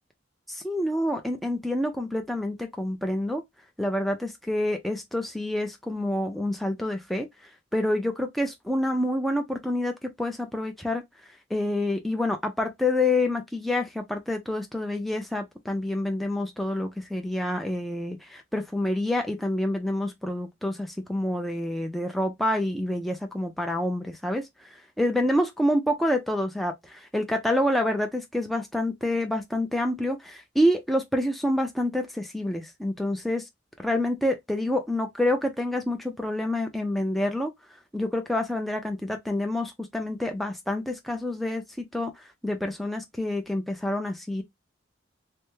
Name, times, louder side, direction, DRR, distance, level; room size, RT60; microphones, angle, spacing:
voice 1, 0.5-3.4 3.8-7.3 7.7-11.0 11.5-24.5 25.0-33.4 33.8-37.5 37.9-42.1 42.4-44.4, left 1 dB, ahead, 0.4 m, -27 dB
3.3 x 2.1 x 3.0 m
head